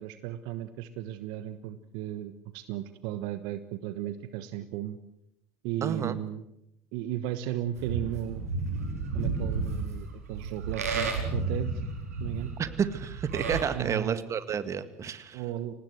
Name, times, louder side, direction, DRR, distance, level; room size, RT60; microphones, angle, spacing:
voice 1, 0.0-5.0 5.6-6.4 6.9-8.5 9.1-11.7 12.2-12.5 13.7-14.3 15.3-15.7, right 12 dB, 65° right, 12 dB, 1.3 m, -35 dB
voice 2, 5.8-6.2 12.6-15.4, right 7 dB, 40° right, 13 dB, 1.9 m, -31 dB
Livestock farm animals working animals, 7.8-13.7, right 4 dB, 85° right, 4.4 m, -32 dB
24.5 x 19.5 x 8.0 m, 0.78 s
hypercardioid pair, 70°, 8 cm